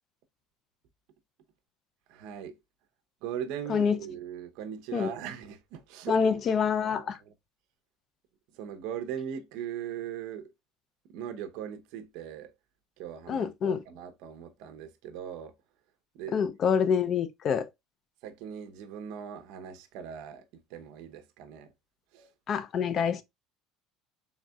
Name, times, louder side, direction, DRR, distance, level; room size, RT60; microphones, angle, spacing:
voice 1, 2.1-2.6 3.2-6.4 6.8-7.3 8.5-10.5 11.1-12.5 13.0-15.6 16.1-16.4 18.2-21.7 22.1-22.3, right 9 dB, 65° right, 0.7 m, -40 dB
voice 2, 6.1-7.2 13.3-13.8 16.3-17.7 22.5-23.2, left 6 dB, 35° left, 0.4 m, -26 dB
4.0 x 3.5 x 2.3 m
cardioid pair, 160°, 0 cm